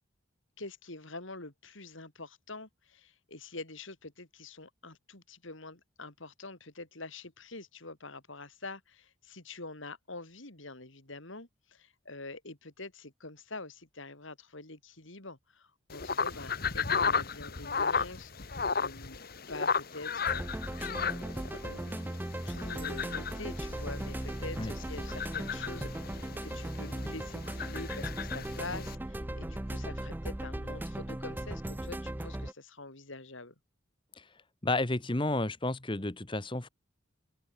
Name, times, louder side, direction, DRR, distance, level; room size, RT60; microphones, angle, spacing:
voice 1, 0.6-19.2 19.5-20.5 20.8-21.2 21.6-22.2 22.5-33.5, left 2 dB, 65° left, 3.7 m, -45 dB
sound 1, 15.9-29.0, left 5 dB, 45° left, 1.4 m, -35 dB
sound 2, 20.3-32.5, right 1 dB, 10° right, 0.4 m, -38 dB
voice 2, 34.6-36.7, left 2 dB, 25° left, 1.2 m, -31 dB
open air
head